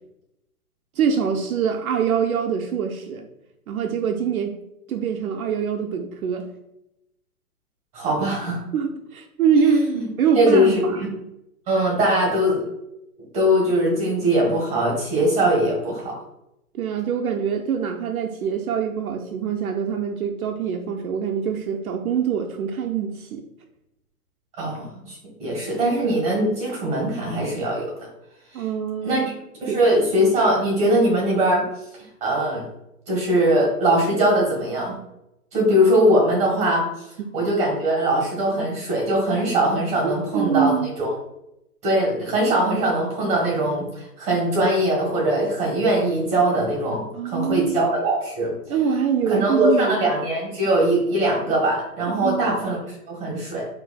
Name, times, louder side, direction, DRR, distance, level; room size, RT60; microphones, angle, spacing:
voice 1, 1.0-3.3 3.7-4.6 4.9-6.5 8.7-9.8 10.2-11.1 16.7-23.4 28.5-29.3 29.7-29.8 40.0-40.9 47.1-47.8 48.7-50.0 52.1-52.5, right 7 dB, 70° right, 4 dB, 0.6 m, -24 dB
voice 2, 7.9-8.6 9.6-10.1 10.3-11.1 11.7-12.6 13.3-16.2 24.6-27.9 29.0-29.2 29.6-31.7 32.2-32.7 33.1-35.0 35.5-36.9 37.3-41.1 41.8-48.5 49.3-53.7, right 1 dB, 15° right, -2 dB, 1.4 m, -21 dB
4.6 x 2.9 x 2.3 m, 0.87 s
hypercardioid pair, 145°, 45 cm